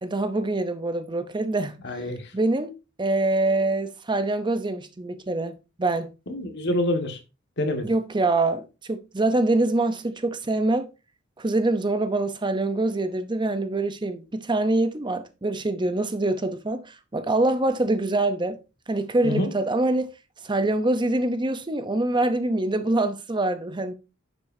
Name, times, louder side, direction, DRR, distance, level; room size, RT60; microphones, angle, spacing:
voice 1, 0.0-1.8 2.3-6.1 7.8-10.9 11.4-18.6 18.9-20.1 20.4-23.9, right 2 dB, 25° right, 0.7 m, -25 dB
voice 2, 1.8-2.3 6.3-7.2 7.6-7.9 19.2-19.5, left 1 dB, 60° left, 1.8 m, -26 dB
10.5 x 7.4 x 2.7 m
head